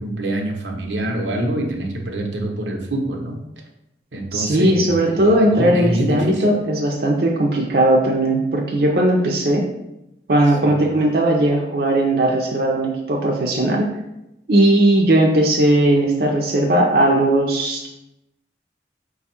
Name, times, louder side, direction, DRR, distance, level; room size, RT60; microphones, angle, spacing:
voice 1, 0.0-3.4 4.1-6.4 10.6-10.7, right 1 dB, 85° right, 0 dB, 0.8 m, -25 dB
voice 2, 4.3-9.7 10.3-13.9 14.5-17.9, right 1 dB, 55° right, -1 dB, 0.5 m, -17 dB
5.0 x 2.3 x 4.2 m, 0.88 s
head